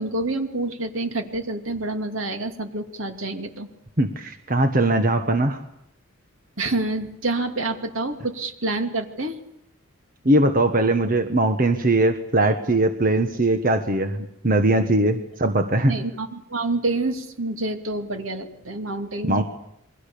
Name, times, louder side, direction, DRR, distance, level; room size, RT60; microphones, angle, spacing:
voice 1, 0.0-3.7 6.6-9.4 15.9-19.4, right 2 dB, 75° right, 6 dB, 2.7 m, -27 dB
voice 2, 4.0-5.6 10.2-16.0 19.3-19.4, right 2 dB, 40° right, 7 dB, 1.5 m, -20 dB
28.5 x 22.5 x 7.0 m, 0.75 s
head